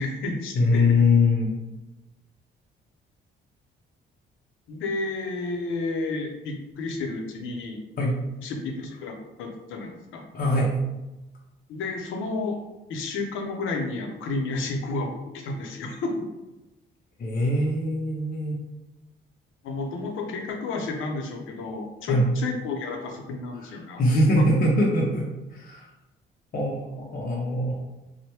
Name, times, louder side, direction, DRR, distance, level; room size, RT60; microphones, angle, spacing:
voice 1, 0.0-0.8 4.7-7.8 8.4-10.2 11.7-12.6 12.9-16.2 19.6-24.0 24.4-24.5, left 3 dB, 85° left, 2 dB, 0.6 m, -31 dB
voice 2, 0.5-1.6 8.0-8.2 10.3-10.7 17.2-18.6 22.1-22.3 23.6-23.7 24.0-25.9 26.5-27.7, left 2 dB, 45° left, -3 dB, 0.6 m, -22 dB
3.2 x 2.1 x 2.9 m, 1.0 s
cardioid pair, 90°, 20 cm